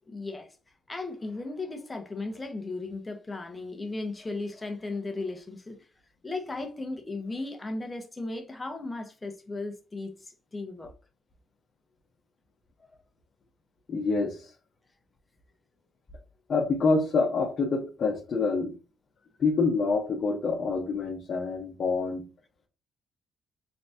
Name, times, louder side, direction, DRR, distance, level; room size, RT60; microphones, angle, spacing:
voice 1, 0.1-0.6 0.9-5.8 6.2-10.9 12.8-12.9, left 3 dB, 20° left, 1.0 m, -36 dB
voice 2, 13.9-14.5 16.5-18.7 19.4-22.2, left 4 dB, 50° left, 1.0 m, -26 dB
4.0 x 3.4 x 2.7 m
cardioid pair, 90°, 0 cm